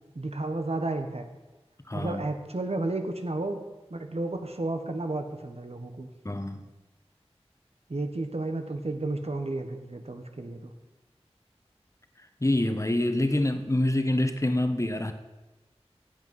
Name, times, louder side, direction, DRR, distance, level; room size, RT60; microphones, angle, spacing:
voice 1, 0.1-1.3 1.9-3.6 3.9-6.1 7.9-10.7, right 2 dB, 70° right, 1.4 m, -32 dB
voice 2, 1.9-2.2 6.2-6.7 12.4-15.1, left 1 dB, 25° left, 1.1 m, -26 dB
16.0 x 8.1 x 5.6 m
wide cardioid pair, 50°, 11 cm